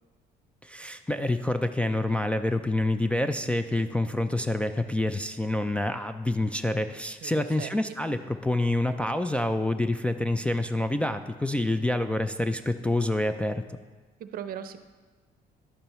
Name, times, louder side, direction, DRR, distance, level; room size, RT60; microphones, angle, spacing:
voice 1, 0.6-13.6, left 1 dB, 5° left, 6 dB, 0.3 m, -27 dB
voice 2, 7.2-7.7 14.2-14.8, right 9 dB, 60° right, 10 dB, 0.6 m, -38 dB
11.0 x 8.7 x 3.0 m, 1.3 s
cardioid pair, 110°, 17 cm